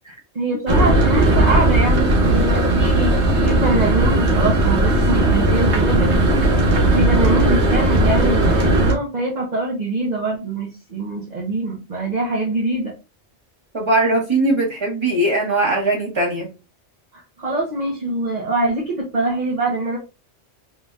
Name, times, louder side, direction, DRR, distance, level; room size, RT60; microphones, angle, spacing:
voice 1, 0.3-6.5 6.9-12.9 17.4-20.0, right 2 dB, 40° right, -4 dB, 1.1 m, -23 dB
sound 1, 0.7-8.9, right 2 dB, 80° right, 1.3 m, -17 dB
voice 2, 13.7-16.5, right 2 dB, 25° right, -2 dB, 1.5 m, -20 dB
3.9 x 3.2 x 2.4 m, 0.29 s
omnidirectional pair, 1.1 m